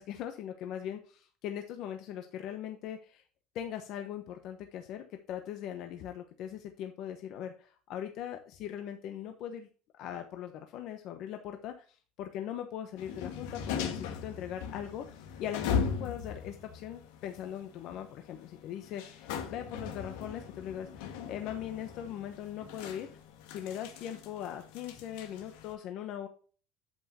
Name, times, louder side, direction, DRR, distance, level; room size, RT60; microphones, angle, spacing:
voice 1, 0.0-3.2 3.5-9.7 10.0-23.1 23.5-26.3, left 10 dB, 50° left, 6 dB, 0.9 m, -40 dB
sound 1, 13.0-25.7, left 6 dB, 85° left, 1.7 m, -39 dB
8.6 x 8.1 x 2.9 m, 0.39 s
cardioid pair, 155°, 0 cm